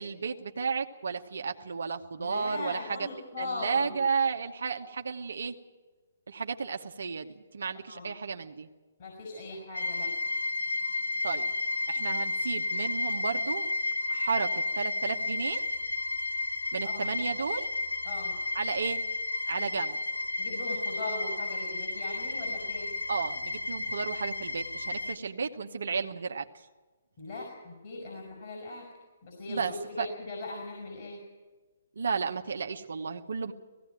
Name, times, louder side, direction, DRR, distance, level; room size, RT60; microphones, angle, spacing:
voice 1, 0.0-3.1 3.4-5.6 6.3-8.7 11.2-11.5 11.9-13.7 14.1-15.6 16.7-17.7 18.5-19.0 19.5-20.0 23.1-26.4 29.5-30.1 32.0-33.5, right 5 dB, 70° right, 5 dB, 1.0 m, -33 dB
voice 2, 2.2-3.9 7.9-8.1 9.0-10.1 16.8-17.0 18.0-18.4 20.4-22.9 27.2-28.8 29.2-31.2, left 2 dB, 45° left, -1 dB, 5.2 m, -39 dB
sound 1, 9.7-25.2, left 2 dB, 90° left, 0.8 m, -32 dB
18.0 x 16.5 x 9.1 m, 1.3 s
figure-of-eight pair, 135°, 0 cm